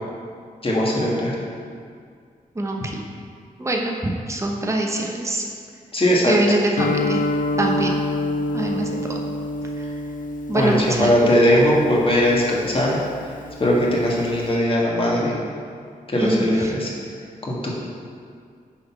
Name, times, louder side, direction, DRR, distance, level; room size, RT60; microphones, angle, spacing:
voice 1, 0.6-1.3 2.8-2.9 5.9-6.3 10.5-13.0 13.6-15.4 16.1-16.9 17.5-17.7, equal, 35° left, -4 dB, 1.6 m, -19 dB
voice 2, 2.6-3.0 3.6-5.4 6.3-7.2 7.6-8.0 8.5-9.2 9.8-9.9 10.5-11.2 16.2-16.7, right 1 dB, 20° right, 0 dB, 0.7 m, -24 dB
Guitar, 6.8-14.5, left 2 dB, 60° left, 0.6 m, -28 dB
6.5 x 4.0 x 5.7 m, 2.2 s
cardioid pair, 75°, 15 cm